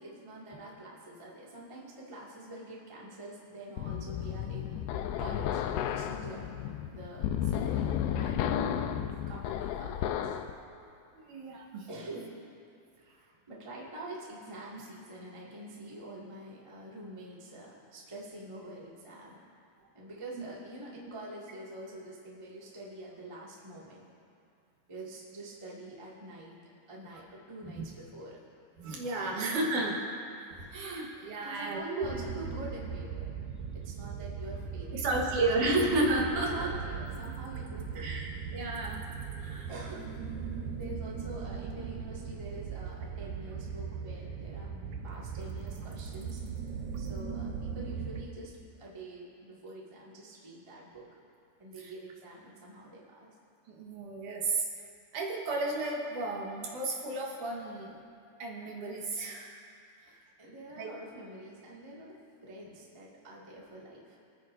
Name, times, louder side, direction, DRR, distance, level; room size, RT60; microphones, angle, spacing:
voice 1, 0.0-6.5 6.9-8.8 9.3-10.3 11.9-12.4 13.0-19.4 19.9-24.0 24.9-26.6 26.9-28.4 29.2-29.9 30.7-30.8 31.4-33.3 33.7-35.0 36.5-38.1 39.7-40.1 40.7-44.7 45.0-46.4 47.0-51.1 51.6-53.3 60.0-64.2, right 1 dB, 40° right, -5 dB, 0.4 m, -46 dB
sound 1, 3.8-10.5, left 10 dB, 85° left, 2.5 m, -33 dB
voice 2, 11.1-11.9 20.4-20.5 27.6-27.8 28.8-30.0 30.6-32.1 34.9-36.7 38.0-39.0 39.4-39.7 51.8-51.9 53.7-54.7 55.1-58.0 58.4-59.6 60.8-60.9, right 2 dB, 65° right, -1 dB, 2.6 m, -32 dB
sound 2, 32.0-48.2, right 6 dB, 85° right, 1.6 m, -39 dB
27.0 x 9.9 x 2.6 m, 2.5 s
omnidirectional pair, 4.5 m